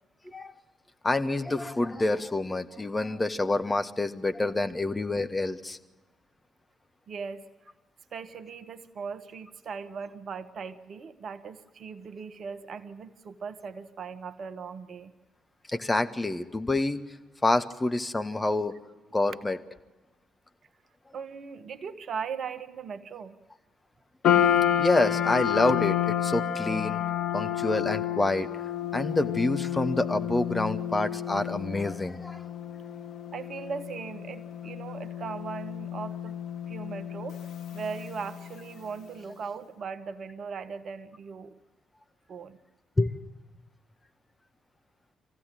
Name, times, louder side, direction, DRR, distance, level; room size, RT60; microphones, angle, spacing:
voice 1, 1.0-5.8 15.7-17.0 17.4-18.7 19.1-19.6 24.8-27.0 27.3-28.5 28.9-32.4 43.0-43.1, left 2 dB, 20° left, 8 dB, 1.4 m, -27 dB
voice 2, 7.1-7.7 8.1-15.1 21.1-23.4 33.3-36.3 36.7-41.6 42.3-42.6, right 6 dB, 55° right, 13 dB, 1.1 m, -39 dB
sound 1, 24.2-38.7, left 10 dB, 65° left, 1.1 m, -30 dB
25.0 x 15.5 x 9.2 m, 1.2 s
figure-of-eight pair, 40°, 0 cm